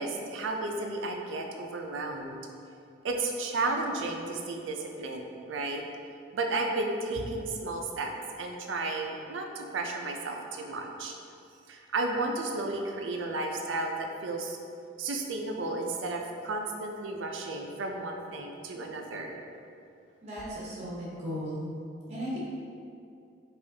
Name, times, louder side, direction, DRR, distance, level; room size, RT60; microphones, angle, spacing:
voice 1, 0.0-2.4 3.0-5.8 6.3-8.1 8.4-11.1 11.7-14.6 15.0-19.4, right 2 dB, 85° right, 2 dB, 0.4 m, -33 dB
voice 2, 20.2-21.7 22.1-22.4, equal, 35° right, -7 dB, 0.9 m, -36 dB
4.9 x 2.4 x 2.7 m, 2.5 s
head